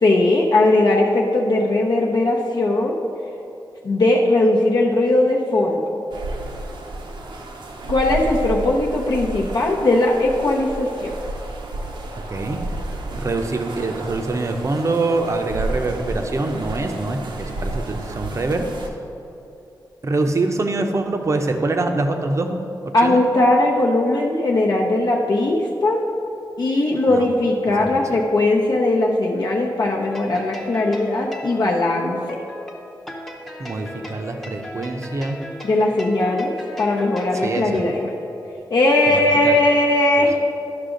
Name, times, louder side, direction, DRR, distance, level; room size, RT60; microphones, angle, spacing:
voice 1, 0.0-3.0 3.8-5.8 7.9-11.1 22.9-26.1 26.6-32.2 35.6-38.1 38.7-40.4, left 2 dB, 60° left, -1 dB, 0.7 m, -19 dB
sound 1, 6.1-18.9, right 2 dB, 80° right, 0.8 m, -31 dB
voice 2, 12.3-12.6 13.1-18.7 20.0-22.6 23.0-23.2 27.1-27.3 27.8-28.2 33.6-35.4 37.4-37.8 39.1-39.6 40.2-40.3, right 2 dB, 40° right, 5 dB, 0.6 m, -24 dB
sound 2, 30.1-38.5, left 1 dB, 5° left, 0.7 m, -37 dB
11.5 x 6.0 x 3.8 m, 2.9 s
wide cardioid pair, 135°, 8 cm